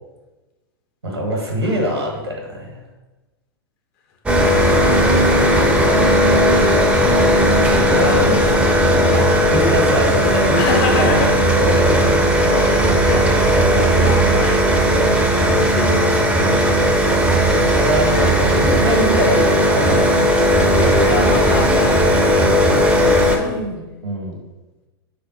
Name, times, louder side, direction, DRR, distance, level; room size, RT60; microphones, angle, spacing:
voice 1, 1.0-2.8 6.9-7.2 7.9-8.4 9.1-12.2 13.6-14.1 15.3-15.5 17.7-20.9 23.4-24.4, equal, 90° right, 0 dB, 1.2 m, -24 dB
sound 1, 4.3-23.4, equal, 10° right, 0.6 m, -15 dB
voice 2, 7.7-8.3 8.7-9.0 10.6-11.5 12.0-14.9 15.5-17.2 21.0-22.4 23.0-23.6, left 4 dB, 45° left, 2 dB, 0.8 m, -28 dB
3.6 x 3.4 x 4.1 m, 1.1 s
figure-of-eight pair, 95°, 13 cm